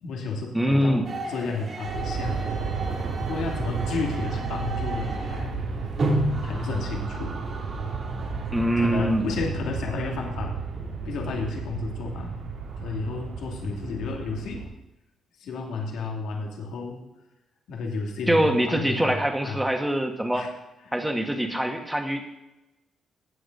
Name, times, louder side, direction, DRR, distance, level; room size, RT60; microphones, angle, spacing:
voice 1, 0.0-2.4 3.1-5.6 6.0-6.1 6.4-7.4 8.7-10.6 11.0-12.5 12.8-14.7 15.4-17.0 17.7-19.7 20.3-20.5, left 4 dB, 75° left, 0 dB, 2.4 m, -32 dB
voice 2, 0.5-1.1 8.5-9.2 18.3-20.5 20.9-22.3, right 1 dB, 5° right, 4 dB, 1.7 m, -24 dB
sound 1, 1.0-9.4, right 1 dB, 50° right, 2.8 m, -33 dB
Aircraft, 1.8-14.7, right 4 dB, 75° right, 2.4 m, -32 dB
16.5 x 7.8 x 4.0 m, 0.97 s
cardioid pair, 90°, 0 cm